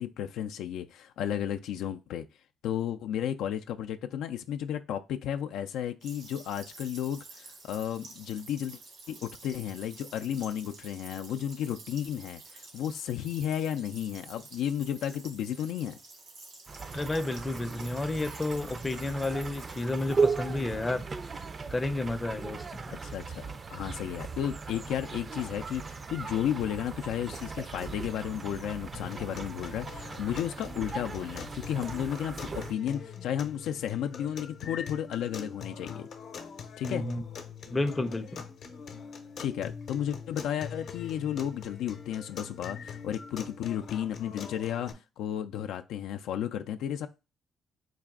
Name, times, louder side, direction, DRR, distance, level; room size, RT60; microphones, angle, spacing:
voice 1, 0.0-2.2 2.6-8.8 9.1-16.0 22.9-36.1 36.8-37.1 39.4-47.1, left 10 dB, 85° left, 0.3 m, -33 dB
sound 1, 6.0-21.0, right 3 dB, 85° right, 1.6 m, -50 dB
sound 2, 16.7-32.7, right 4 dB, 35° right, 0.4 m, -37 dB
voice 2, 16.9-21.1 21.7-22.8 36.8-37.2 37.7-38.4, left 2 dB, 20° left, 0.5 m, -31 dB
sound 3, 28.9-44.9, left 6 dB, 65° left, 0.7 m, -43 dB
3.9 x 2.5 x 3.5 m
cardioid pair, 90°, 0 cm